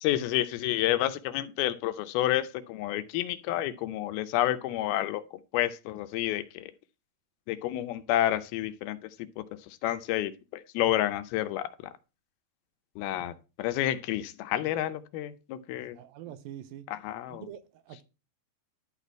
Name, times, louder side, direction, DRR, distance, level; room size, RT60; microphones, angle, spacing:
voice 1, 0.0-5.2 5.5-6.7 7.5-9.0 9.4-9.5 9.8-11.7 13.0-16.0 16.9-17.4, left 13 dB, 85° left, 2.6 m, -29 dB
voice 2, 15.8-16.9 17.3-18.0, right 11 dB, 80° right, 2.4 m, -45 dB
11.5 x 4.2 x 4.5 m
omnidirectional pair, 4.3 m